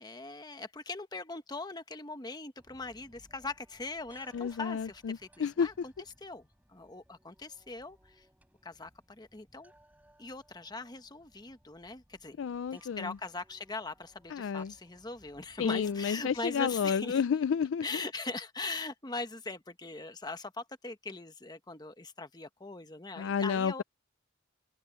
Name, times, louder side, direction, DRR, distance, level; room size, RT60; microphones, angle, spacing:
voice 1, 0.0-5.9 6.2-8.3 8.6-9.7 10.2-12.4 12.7-17.2 17.8-23.8, left 3 dB, 20° left, 1.1 m, -41 dB
sound 1, 2.6-17.1, right 1 dB, 10° right, 7.5 m, -64 dB
voice 2, 4.3-5.7 12.4-13.2 14.3-14.7 15.6-18.0 23.2-23.8, left 6 dB, 70° left, 0.4 m, -31 dB
head